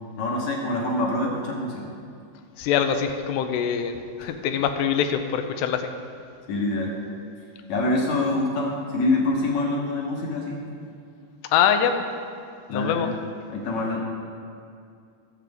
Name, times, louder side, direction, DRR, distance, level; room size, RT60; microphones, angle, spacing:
voice 1, 0.0-1.9 4.2-4.3 6.5-6.9 7.7-10.6 12.7-13.1 13.5-14.0, left 2 dB, 60° left, -2 dB, 2.0 m, -25 dB
voice 2, 2.6-5.9 11.5-12.0 12.7-13.1, left 8 dB, 90° left, 7 dB, 2.8 m, -24 dB
19.0 x 7.5 x 3.6 m, 2.4 s
omnidirectional pair, 4.7 m